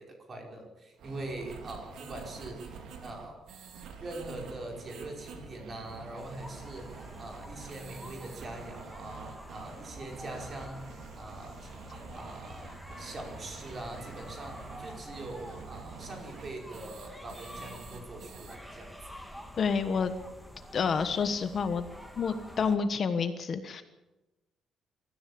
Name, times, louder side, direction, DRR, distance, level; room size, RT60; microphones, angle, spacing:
voice 1, 0.0-3.4 4.0-19.0, right 2 dB, 35° right, 2 dB, 5.1 m, -43 dB
sound 1, 1.0-18.6, right 5 dB, 70° right, 3.3 m, -48 dB
sound 2, 6.2-22.8, equal, ahead, 2.4 m, -47 dB
voice 2, 19.6-20.1 20.7-21.8 22.2-23.8, left 5 dB, 40° left, 10 dB, 1.3 m, -29 dB
23.0 x 14.0 x 8.6 m, 1.1 s
cardioid pair, 155°, 0 cm